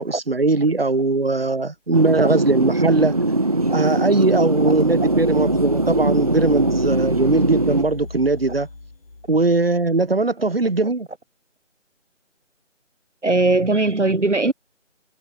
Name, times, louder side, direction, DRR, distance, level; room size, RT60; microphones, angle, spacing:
voice 1, 0.0-3.2 3.7-8.7 9.3-11.1, right 3 dB, 50° right, 6.1 m, -20 dB
sound 1, 1.9-7.8, right 2 dB, 30° right, 1.8 m, -21 dB
sound 2, 2.4-9.9, left 3 dB, 50° left, 7.9 m, -36 dB
voice 2, 13.2-14.5, right 2 dB, 65° right, 5.8 m, -20 dB
figure-of-eight pair, 180°, 38 cm